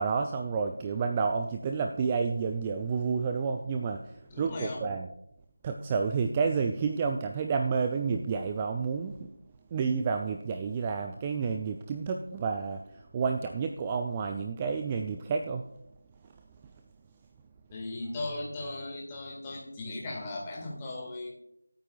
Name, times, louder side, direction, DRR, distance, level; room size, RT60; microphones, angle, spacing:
voice 1, 0.0-5.1 5.6-9.3 9.7-15.7, right 5 dB, 15° right, 5 dB, 0.4 m, -30 dB
voice 2, 4.3-4.8 17.7-21.3, left 2 dB, 15° left, -2 dB, 2.0 m, -37 dB
24.5 x 9.0 x 2.4 m, 0.83 s
figure-of-eight pair, 165°, 0 cm